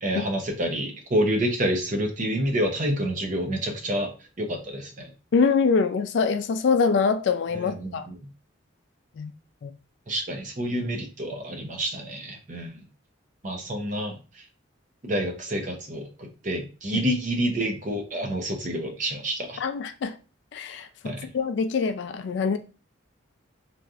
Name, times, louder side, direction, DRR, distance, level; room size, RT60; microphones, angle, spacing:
voice 1, 0.0-4.1 4.4-5.1 7.5-8.3 10.1-12.8 13.4-14.4 15.0-19.6 21.0-21.3, equal, 40° right, 0.6 m, -28 dB
voice 2, 5.3-8.1 9.2-9.3 9.6-9.7 19.6-20.2 20.5-22.6, left 5 dB, 60° left, 0.3 m, -24 dB
3.1 x 2.6 x 2.3 m
head